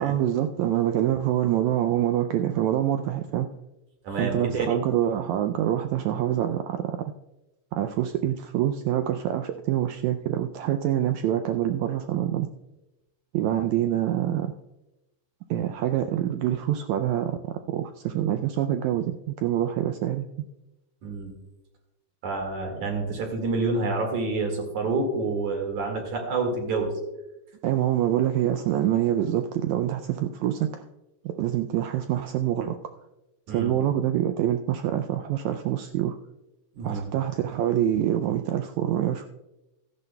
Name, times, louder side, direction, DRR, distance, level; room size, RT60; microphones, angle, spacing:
voice 1, 0.0-3.5 4.2-7.1 7.7-12.5 13.3-14.5 15.5-17.4 17.7-20.3 27.6-30.9 31.2-32.8 33.5-36.2 36.8-39.3, right 11 dB, 85° right, 7 dB, 1.6 m, -26 dB
voice 2, 4.0-4.7 21.0-21.3 22.2-26.9 33.5-33.7 36.7-37.1, right 3 dB, 65° right, 2 dB, 3.2 m, -28 dB
16.5 x 12.5 x 2.2 m, 0.96 s
omnidirectional pair, 3.8 m